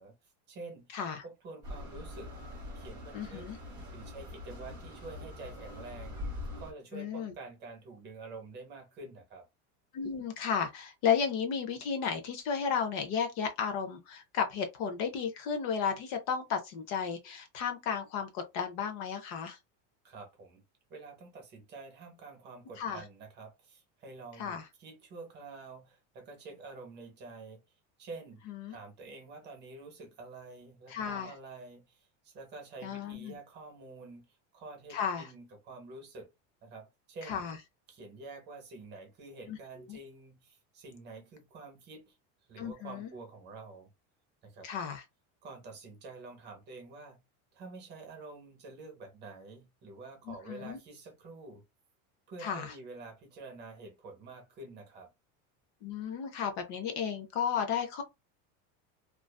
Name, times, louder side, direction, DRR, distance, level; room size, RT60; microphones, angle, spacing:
voice 1, 0.0-1.0 1.2-2.4 2.8-3.5 3.9-6.2 6.6-9.5 20.0-20.6 20.9-27.6 28.0-28.4 28.7-36.3 36.6-37.4 37.9-42.2 42.5-43.9 44.4-44.7 45.4-47.2 47.5-51.6 52.3-55.1, right 3 dB, 30° right, 0.7 m, -48 dB
voice 2, 0.9-1.2 3.1-3.6 6.9-7.3 9.9-19.6 22.8-23.0 24.4-24.6 28.5-28.8 30.9-31.3 32.8-33.4 34.9-35.3 37.3-37.6 39.5-39.6 39.9-40.0 42.6-43.1 44.6-45.0 50.3-50.8 52.4-52.7 55.8-58.0, left 7 dB, 50° left, 0.6 m, -33 dB
sound 1, 1.6-6.7, left 2 dB, 10° right, 1.1 m, -43 dB
2.5 x 2.3 x 2.2 m
cardioid pair, 170°, 38 cm